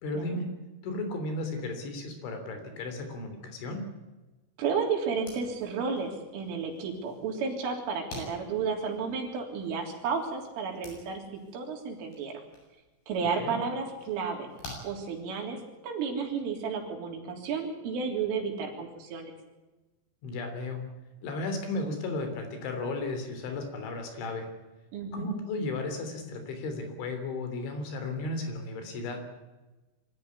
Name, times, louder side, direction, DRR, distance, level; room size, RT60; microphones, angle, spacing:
voice 1, 0.0-0.5 0.8-3.9 13.4-13.6 20.2-20.9 21.2-24.5 25.1-29.2, left 2 dB, 65° left, 7 dB, 5.6 m, -34 dB
voice 2, 4.6-12.4 13.1-14.5 14.8-15.6 15.8-19.3 24.9-25.3, right 5 dB, 75° right, 1 dB, 5.9 m, -32 dB
sound 1, 5.1-15.7, left 2 dB, 50° left, 9.5 m, -50 dB
24.5 x 14.0 x 9.7 m, 1.1 s
omnidirectional pair, 5.8 m